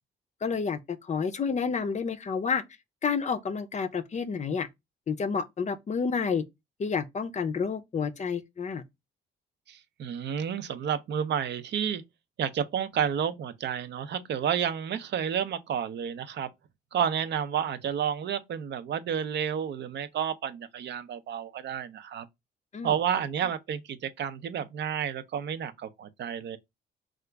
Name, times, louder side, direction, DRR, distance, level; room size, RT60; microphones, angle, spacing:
voice 1, 0.4-2.6 3.0-4.7 5.1-6.4 6.8-8.8 22.7-22.9, left 5 dB, 35° left, 0.5 m, -29 dB
voice 2, 9.7-12.0 12.4-16.5 16.9-22.3 22.8-26.6, right 8 dB, 60° right, 0.5 m, -30 dB
2.9 x 2.4 x 3.3 m
cardioid pair, 90°, 20 cm